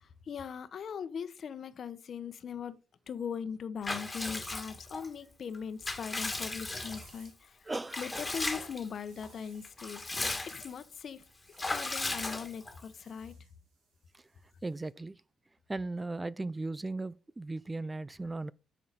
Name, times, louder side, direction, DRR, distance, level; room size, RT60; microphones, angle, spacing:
voice 1, 0.0-2.8 3.1-7.6 8.0-10.0 10.4-11.2 11.7-13.3, left 7 dB, 55° left, 1.0 m, -40 dB
Water / Bathtub (filling or washing) / Liquid, 3.8-5.1 5.5-7.3 7.9-8.9 9.2-9.3 9.6-10.8 11.6-12.9, left 2 dB, 15° left, 2.0 m, -36 dB
sound 1, 6.8-7.4 8.8-9.8 11.3-12.3 12.6-14.9, right 4 dB, 85° right, 5.1 m, -63 dB
voice 2, 7.6-8.3 14.1-14.3 14.6-15.2 15.7-18.5, right 2 dB, 20° right, 0.4 m, -37 dB
9.7 x 6.6 x 4.1 m
cardioid pair, 90°, 0 cm